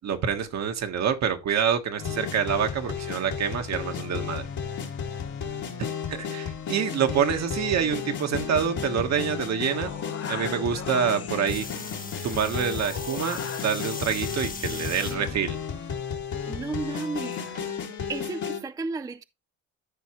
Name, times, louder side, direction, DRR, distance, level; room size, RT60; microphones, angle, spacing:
voice 1, 0.0-4.5 6.1-9.9 10.3-11.7 12.2-15.6, right 7 dB, 60° right, 1.5 m, -27 dB
sound 1, 2.0-18.6, left 7 dB, 70° left, 2.4 m, -33 dB
sound 2, 9.7-17.7, left 6 dB, 50° left, 1.1 m, -42 dB
sound 3, 11.5-15.2 15.8-16.3 17.5-17.6, left 4 dB, 30° left, 1.2 m, -39 dB
voice 2, 16.5-17.7 18.1-19.2, right 4 dB, 10° right, 0.4 m, -33 dB
13.5 x 4.7 x 3.1 m
cardioid pair, 90°, 30 cm